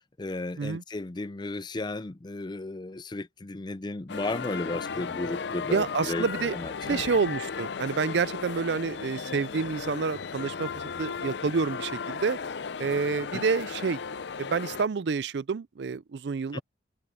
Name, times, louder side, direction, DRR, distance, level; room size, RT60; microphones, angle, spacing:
voice 1, 0.2-6.3 6.5-7.0 13.3-13.4 16.5-16.6, left 2 dB, 25° left, 0.5 m, -34 dB
sound 1, 4.1-14.8, left 5 dB, 70° left, 0.5 m, -35 dB
voice 2, 5.7-12.4 12.8-14.0 14.4-16.6, right 5 dB, 70° right, 0.4 m, -28 dB
head